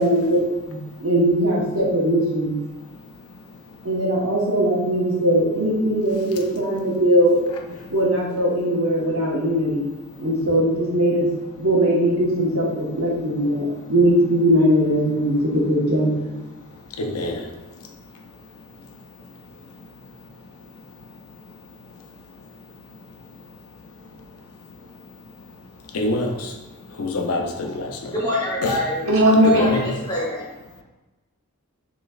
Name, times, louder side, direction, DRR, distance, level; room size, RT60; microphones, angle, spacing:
voice 1, 0.0-2.6 3.8-7.4 7.9-9.9 10.2-11.3 11.6-16.4 29.0-29.6, equal, 70° right, -4 dB, 1.2 m, -20 dB
voice 2, 17.0-17.4 25.9-26.5 27.0-27.9 28.6-28.7 29.4-29.9, left 2 dB, 85° left, 2 dB, 0.6 m, -24 dB
voice 3, 28.1-29.0 29.4-30.5, left 1 dB, 20° left, -7 dB, 1.4 m, -25 dB
6.3 x 3.0 x 2.4 m, 1.1 s
head